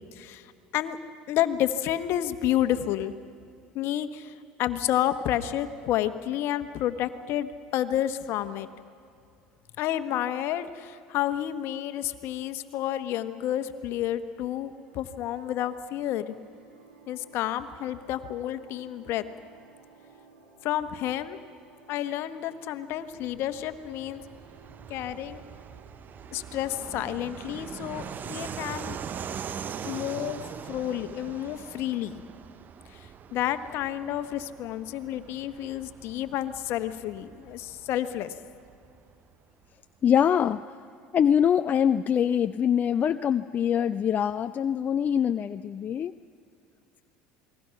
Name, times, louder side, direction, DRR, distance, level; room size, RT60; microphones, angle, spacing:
voice 1, 0.1-1.0 1.3-3.1 3.7-4.3 4.6-8.7 9.8-16.3 17.1-19.2 20.6-21.4 21.9-24.2 24.9-25.4 26.3-29.0 29.8-32.1 32.9-33.0 33.3-38.3, left 12 dB, 60° left, 11 dB, 1.3 m, -30 dB
sound 1, 14.7-31.6, right 5 dB, 90° right, 4.3 m, -56 dB
Fixed-wing aircraft airplane, 23.1-39.3, right 7 dB, 40° right, 0.8 m, -42 dB
voice 2, 40.0-40.6 41.1-46.1, left 8 dB, 40° left, 10 dB, 0.6 m, -24 dB
28.5 x 20.5 x 5.9 m, 2.5 s
hypercardioid pair, 80°, 5 cm